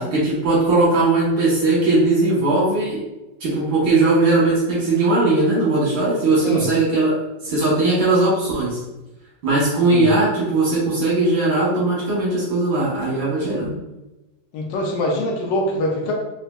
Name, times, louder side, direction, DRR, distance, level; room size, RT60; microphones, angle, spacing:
voice 1, 0.0-3.0 3.4-7.1 7.4-8.8 9.4-13.7, right 2 dB, 85° right, -8 dB, 1.9 m, -19 dB
voice 2, 14.5-16.1, left 1 dB, 80° left, -1 dB, 1.3 m, -23 dB
4.2 x 2.4 x 2.3 m, 1.0 s
omnidirectional pair, 2.0 m